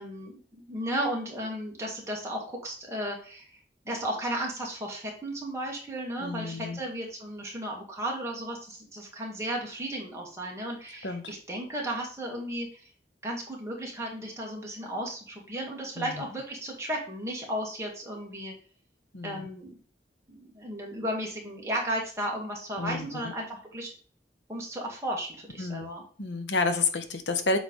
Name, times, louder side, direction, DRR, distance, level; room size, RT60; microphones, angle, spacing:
voice 1, 0.0-3.5 3.9-12.8 13.2-18.5 19.2-19.7 20.3-23.9 24.5-26.0, right 1 dB, 15° right, -2 dB, 1.9 m, -34 dB
voice 2, 6.2-6.8 11.0-11.3 16.0-16.2 19.1-19.5 22.8-23.3 25.6-25.9 26.2-27.6, left 3 dB, 85° left, 7 dB, 1.0 m, -30 dB
8.1 x 3.4 x 5.3 m, 0.43 s
head